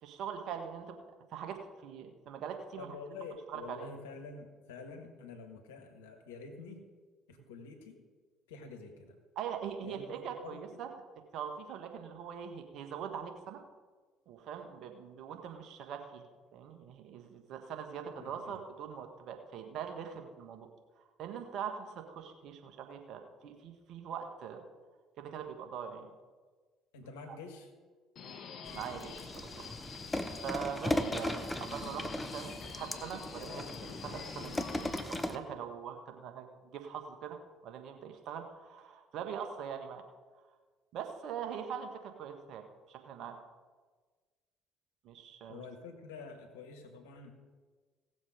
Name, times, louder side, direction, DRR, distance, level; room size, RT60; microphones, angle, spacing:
voice 1, 0.0-1.0 1.3-2.9 3.5-3.9 9.3-10.9 11.3-13.6 14.3-16.2 16.5-20.7 21.2-24.6 25.2-26.1 28.7-29.6 30.4-37.4 37.6-40.0 40.9-43.4 45.0-45.6, right 7 dB, 60° right, 5 dB, 1.6 m, -42 dB
voice 2, 2.8-6.8 7.3-8.0 8.5-9.2 9.8-10.8 18.2-18.6 26.9-27.7 45.5-47.3, left 4 dB, 80° left, 5 dB, 1.8 m, -48 dB
Subway metro underground, 28.2-35.0, left 6 dB, 50° left, 1.4 m, -47 dB
sound 1, 28.7-35.4, left 1 dB, 15° left, 1.2 m, -37 dB
17.5 x 7.2 x 5.1 m, 1.4 s
hypercardioid pair, 55°, 0 cm